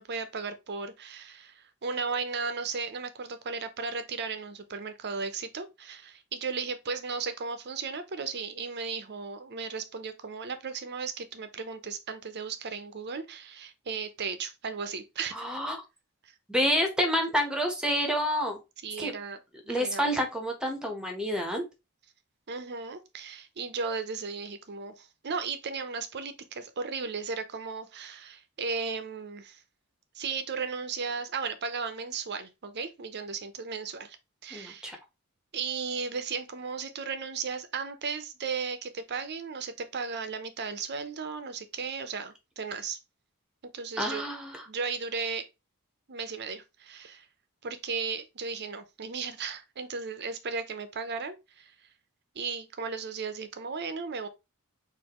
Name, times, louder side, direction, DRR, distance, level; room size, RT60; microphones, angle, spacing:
voice 1, 0.0-15.6 16.2-16.3 18.8-19.4 19.8-20.2 22.5-29.6 30.1-34.2 34.4-35.0 35.5-43.0 43.7-44.2 44.7-45.5 46.1-47.3 47.6-51.7 52.3-54.3, right 5 dB, 50° right, 0.7 m, -35 dB
voice 2, 15.3-15.8 16.5-18.6 19.0-19.1 19.7-21.6 34.5-35.0 44.0-44.6, equal, 5° right, 1.0 m, -28 dB
6.4 x 2.7 x 3.0 m
head